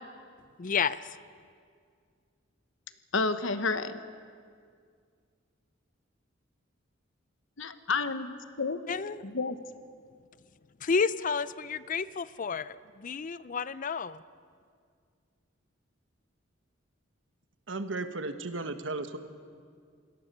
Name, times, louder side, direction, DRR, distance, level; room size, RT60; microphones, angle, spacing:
voice 1, 0.6-1.2 8.9-9.2 10.8-14.2, left 5 dB, 45° left, 17 dB, 0.5 m, -31 dB
voice 2, 3.1-4.0 7.6-8.3 8.6-8.8 9.2-9.6, left 4 dB, 75° left, 10 dB, 1.2 m, -30 dB
voice 3, 17.7-19.2, right 3 dB, 70° right, 9 dB, 1.3 m, -35 dB
28.0 x 18.0 x 6.8 m, 2.1 s
head